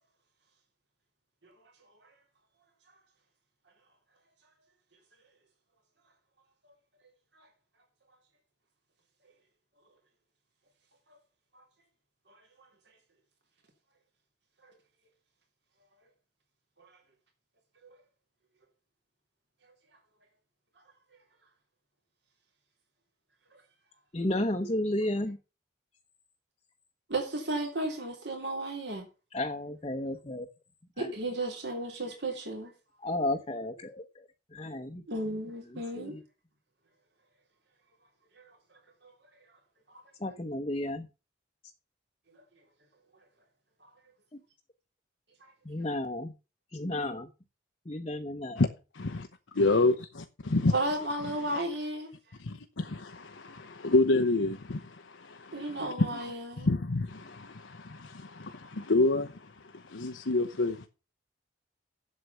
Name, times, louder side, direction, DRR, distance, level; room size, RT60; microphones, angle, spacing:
voice 1, 24.1-25.4 29.3-30.5 31.0-31.1 33.0-35.0 36.0-36.2 40.2-41.1 45.6-46.3 46.7-47.3 47.9-48.6, left 1 dB, 30° left, 0.9 m, -32 dB
voice 2, 27.1-29.1 31.0-32.7 35.1-36.2 38.4-38.5 39.0-39.1 39.9-40.0 45.4-45.5 50.7-52.1 55.5-56.7, right 1 dB, 60° right, 3.5 m, -34 dB
voice 3, 48.9-49.3 49.5-50.7 52.4-56.2 56.6-60.9, left 2 dB, 85° left, 0.9 m, -28 dB
8.0 x 7.6 x 6.8 m
head